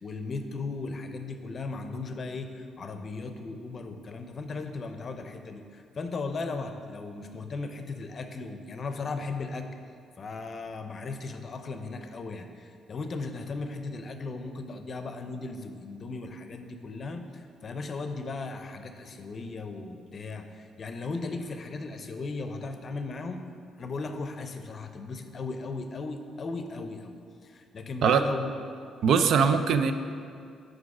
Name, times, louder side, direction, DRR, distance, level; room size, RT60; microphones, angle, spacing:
voice 1, 0.0-9.7 10.2-23.4 23.8-28.5 29.1-29.6, left 3 dB, 45° left, 7 dB, 0.5 m, -37 dB
voice 2, 29.0-29.9, right 6 dB, 75° right, 9 dB, 0.4 m, -21 dB
6.2 x 4.9 x 4.8 m, 2.3 s
cardioid pair, 90°, 0 cm